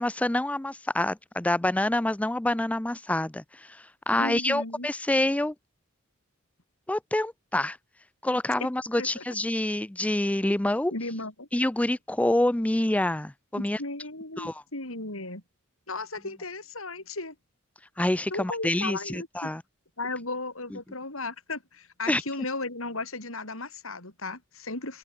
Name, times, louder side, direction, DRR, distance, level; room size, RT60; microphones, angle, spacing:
voice 1, 0.0-5.5 6.9-7.8 8.2-10.9 11.5-13.8 14.4-14.6 18.0-19.6 22.1-22.2, left 1 dB, 5° left, 0.4 m, -27 dB
voice 2, 4.2-4.9 9.0-9.2 10.9-11.5 13.8-15.4 15.9-17.4 18.3-19.5 20.0-25.0, left 2 dB, 70° left, 6.9 m, -35 dB
open air
head